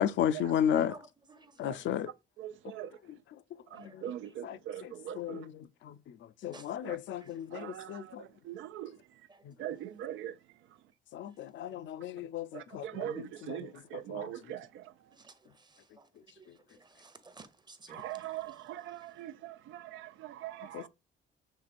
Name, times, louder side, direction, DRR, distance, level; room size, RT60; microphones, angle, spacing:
voice 1, 0.0-0.9 1.6-2.1 4.4-5.6 6.4-8.2 11.1-13.6 14.1-14.3 20.7-20.9, left 9 dB, 70° left, 0.4 m, -33 dB
voice 2, 0.8-1.5 3.7-3.9 6.5-6.7 15.2-15.3 16.4-16.5 16.8-18.5, right 3 dB, 20° right, 0.8 m, -53 dB
voice 3, 2.4-2.9 3.7-5.5 6.8-7.0 7.5-9.0 9.6-10.3 12.5-14.9 17.9-20.9, right 12 dB, 80° right, 0.4 m, -41 dB
6.3 x 3.3 x 2.4 m
cardioid pair, 90°, 20 cm